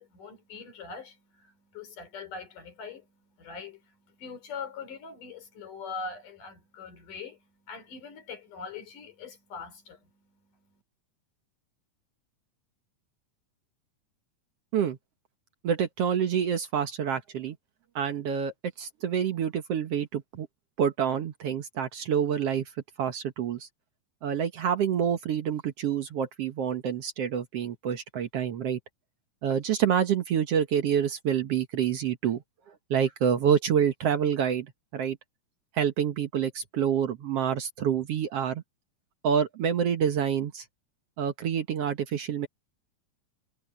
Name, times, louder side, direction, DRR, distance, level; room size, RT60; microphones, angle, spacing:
voice 1, 0.0-10.8, left 5 dB, 80° left, 5.7 m, -42 dB
voice 2, 15.6-17.6 18.0-20.5 20.8-22.7 23.0-23.7 24.2-28.8 29.4-32.4 32.9-35.2 35.7-38.6 39.2-40.6 41.2-42.5, right 8 dB, 60° right, 1.9 m, -27 dB
omnidirectional pair, 3.6 m